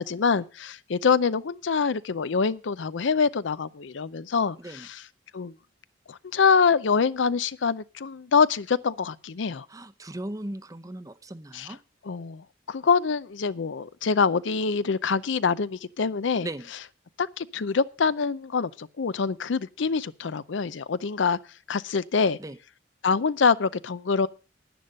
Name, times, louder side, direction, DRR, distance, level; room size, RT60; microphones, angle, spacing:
voice 1, 0.0-5.0 5.3-5.5 6.1-9.7 11.5-11.7 12.0-16.5 17.2-21.4 21.7-22.4 23.0-24.3, left 5 dB, 75° left, 0.5 m, -25 dB
voice 2, 9.7-11.8 16.4-16.7 22.4-22.6, right 1 dB, 20° right, 0.6 m, -38 dB
10.5 x 10.0 x 5.2 m
head